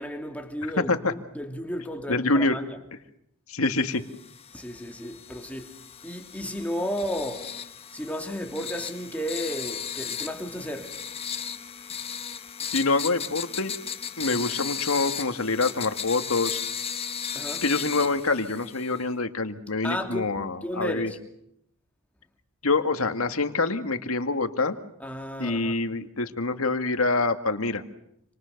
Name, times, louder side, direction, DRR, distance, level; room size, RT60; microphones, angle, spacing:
voice 1, 0.0-2.6 4.5-5.7 6.0-7.5 7.9-11.0 17.3-17.6 19.8-20.3 20.6-21.2 25.0-25.8, equal, 5° left, 2.8 m, -33 dB
voice 2, 0.8-1.1 2.1-2.6 3.5-4.0 12.6-13.7 14.2-16.6 17.6-21.1 22.6-24.8 25.4-27.8, left 3 dB, 85° left, 2.0 m, -26 dB
sound 1, 4.1-19.0, left 7 dB, 30° left, 1.3 m, -36 dB
28.0 x 27.0 x 6.7 m
head